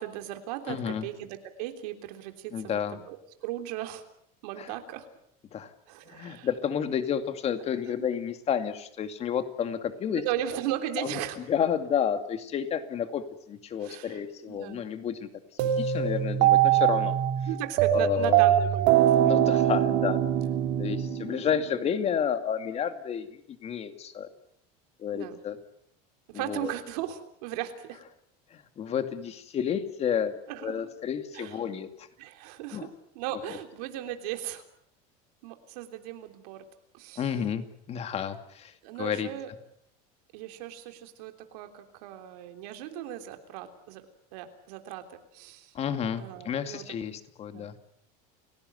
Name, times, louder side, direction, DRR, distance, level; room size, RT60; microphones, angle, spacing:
voice 1, 0.0-4.0 4.4-5.1 5.9-6.5 10.1-11.4 13.8-14.2 14.5-14.8 17.5-19.2 20.4-20.6 25.1-25.4 26.3-28.0 30.5-30.9 31.3-31.6 32.2-34.6 35.4-36.6 36.9-37.3 38.8-39.5 40.3-44.1 44.3-45.7 46.2-46.9 47.5-47.7, right 12 dB, 80° right, 6 dB, 3.5 m, -37 dB
voice 2, 0.7-1.1 2.5-3.0 4.6-4.7 5.5-5.7 6.1-10.2 11.0-11.2 11.5-15.3 15.6-17.2 17.9-18.4 19.2-20.2 20.8-24.3 25.0-25.6 26.3-26.7 28.5-30.3 30.6-32.1 32.7-32.9 37.2-39.3 45.7-47.8, left 8 dB, 35° left, 8 dB, 2.5 m, -31 dB
sound 1, 15.6-21.8, right 11 dB, 65° right, 2.5 m, -23 dB
30.0 x 17.0 x 8.1 m, 0.72 s
cardioid pair, 145°, 20 cm